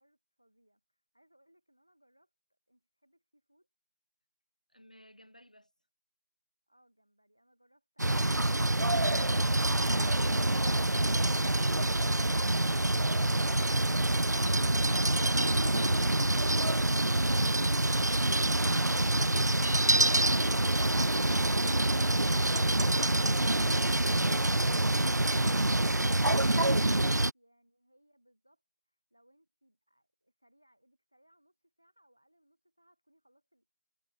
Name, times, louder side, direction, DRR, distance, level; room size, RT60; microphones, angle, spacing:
voice 1, 0.0-3.7 6.7-9.4 21.9-33.7, right 1 dB, 5° left, 2.0 m, -69 dB
voice 2, 4.7-5.7, equal, 25° left, 3.5 m, -57 dB
sound 1, 8.0-27.3, right 1 dB, 80° right, 0.6 m, -26 dB
figure-of-eight pair, 180°, 9 cm